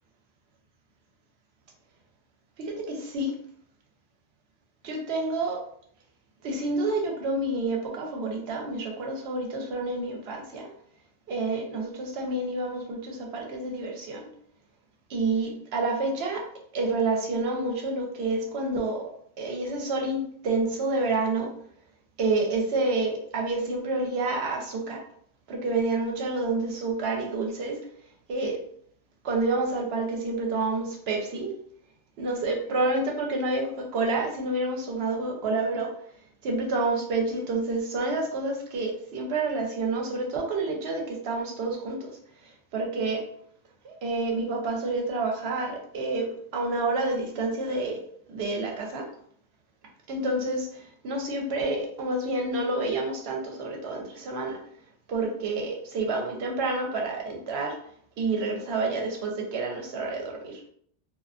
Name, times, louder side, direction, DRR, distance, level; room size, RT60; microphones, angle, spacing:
voice 1, 2.6-3.3 4.8-5.6 6.4-10.7 11.3-14.3 15.1-16.5 16.7-19.1 19.4-21.5 22.2-25.0 25.5-27.8 28.3-28.6 29.2-31.5 32.2-35.9 36.4-42.2 42.7-43.2 43.8-48.0 48.3-49.1 50.1-54.6 55.1-57.8 58.2-60.6, right 2 dB, 65° right, 1 dB, 0.8 m, -28 dB
2.4 x 2.4 x 2.3 m, 0.63 s
omnidirectional pair, 1.2 m